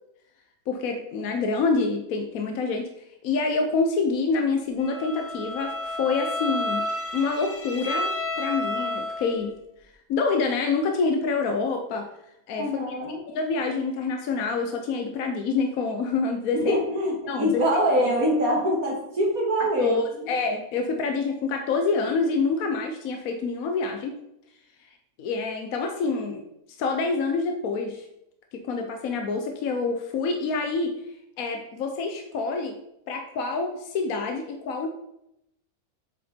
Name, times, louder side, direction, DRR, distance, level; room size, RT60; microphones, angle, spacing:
voice 1, 0.7-2.9 3.2-9.5 10.1-12.1 12.5-12.7 13.3-16.8 17.3-17.5 19.6-24.1 25.2-26.4 26.8-28.0 28.5-30.9 31.4-32.8 33.1-34.9, left 4 dB, 75° left, 4 dB, 1.3 m, -27 dB
Bowed string instrument, 4.8-9.5, left 1 dB, 35° left, 1.0 m, -31 dB
voice 2, 12.6-13.2 16.5-20.3, equal, 75° right, -3 dB, 2.3 m, -24 dB
8.7 x 6.5 x 4.4 m, 0.82 s
omnidirectional pair, 1.5 m